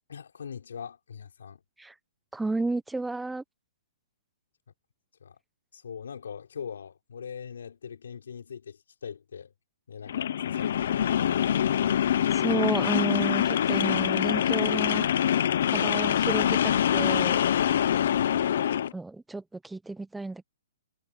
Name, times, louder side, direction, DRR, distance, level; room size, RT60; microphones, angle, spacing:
voice 1, 0.1-1.6 5.2-5.4 5.7-9.5 9.9-11.4 18.2-18.5, left 7 dB, 80° left, 4.5 m, -41 dB
voice 2, 2.3-3.4 12.3-15.1 15.7-17.4 18.9-20.4, right 2 dB, 5° right, 1.0 m, -32 dB
sound 1, 10.1-18.9, left 9 dB, 60° left, 0.8 m, -25 dB
hypercardioid pair, 155°, 0 cm